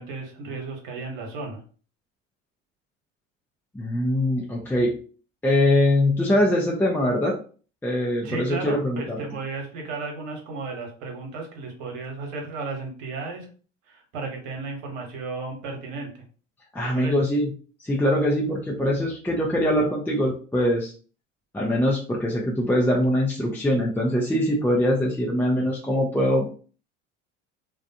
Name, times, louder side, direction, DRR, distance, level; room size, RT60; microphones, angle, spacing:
voice 1, 0.0-1.6 8.2-13.5 13.9-16.2 16.9-17.1, right 3 dB, 70° right, 1 dB, 1.1 m, -34 dB
voice 2, 3.7-5.0 5.4-7.4 7.8-9.2 16.7-17.5 17.8-20.9 21.5-26.6, left 1 dB, 5° left, -2 dB, 0.5 m, -23 dB
2.4 x 2.2 x 2.7 m, 0.39 s
hypercardioid pair, 70°, 38 cm